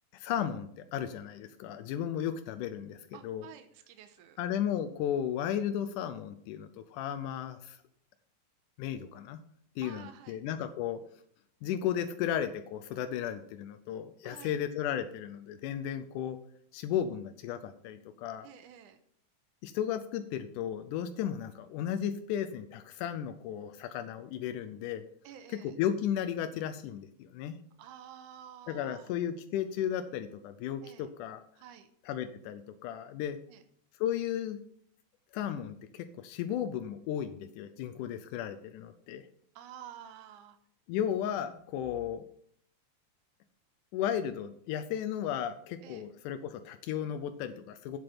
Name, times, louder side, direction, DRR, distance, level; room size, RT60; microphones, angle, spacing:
voice 1, 0.1-3.5 4.4-7.8 8.8-9.4 9.8-11.0 11.6-16.4 16.7-18.5 19.6-25.1 25.5-27.6 28.7-31.4 32.1-33.4 33.9-34.6 35.3-39.3 40.9-42.2 43.9-48.0, left 9 dB, 90° left, 9 dB, 2.1 m, -34 dB
voice 2, 3.1-4.4 9.8-10.4 14.2-14.6 18.4-19.0 25.2-25.8 27.8-29.1 30.8-31.1 31.6-31.9 33.5-33.6 39.6-40.6 45.8-46.1, right 9 dB, 80° right, 9 dB, 2.3 m, -50 dB
8.6 x 7.7 x 6.0 m, 0.66 s
omnidirectional pair, 3.6 m